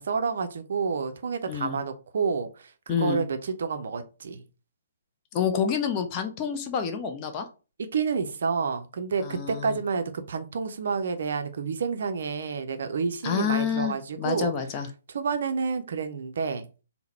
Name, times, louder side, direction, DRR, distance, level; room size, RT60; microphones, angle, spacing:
voice 1, 0.0-4.4 7.9-14.5 15.1-16.7, right 5 dB, 55° right, 0.5 m, -29 dB
voice 2, 1.5-1.8 2.9-3.2 5.3-7.5 9.2-9.8 13.2-14.9, left 7 dB, 25° left, 0.6 m, -28 dB
3.8 x 2.1 x 4.1 m
figure-of-eight pair, 130°, 0 cm